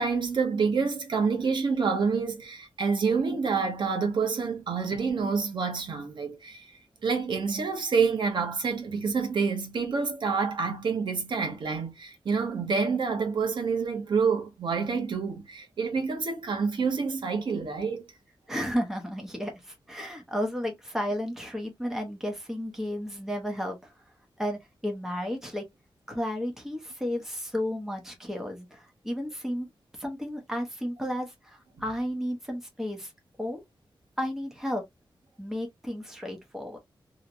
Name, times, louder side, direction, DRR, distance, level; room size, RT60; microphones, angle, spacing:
voice 1, 0.0-6.7 7.0-18.0, right 5 dB, 65° right, 1.0 m, -28 dB
voice 2, 18.5-23.9 24.4-25.7 26.1-29.7 30.0-33.1 33.4-33.6 34.2-34.8 35.4-36.8, equal, 5° right, 1.0 m, -33 dB
3.2 x 3.0 x 2.5 m
wide cardioid pair, 175°, 8 cm